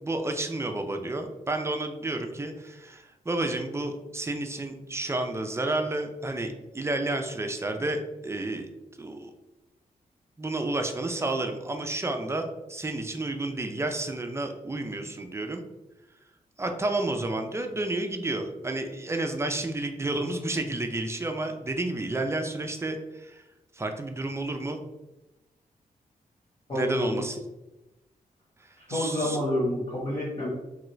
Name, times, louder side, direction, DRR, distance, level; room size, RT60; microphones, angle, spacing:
voice 1, 0.0-8.7 9.0-9.3 10.4-15.6 16.6-23.4 23.7-24.8 26.7-27.4 28.6-29.4, right 2 dB, 20° right, 5 dB, 0.4 m, -31 dB
voice 2, 26.7-27.2 28.8-30.5, left 1 dB, 40° left, -7 dB, 1.3 m, -28 dB
3.1 x 2.4 x 3.0 m, 0.99 s
cardioid pair, 85°, 15 cm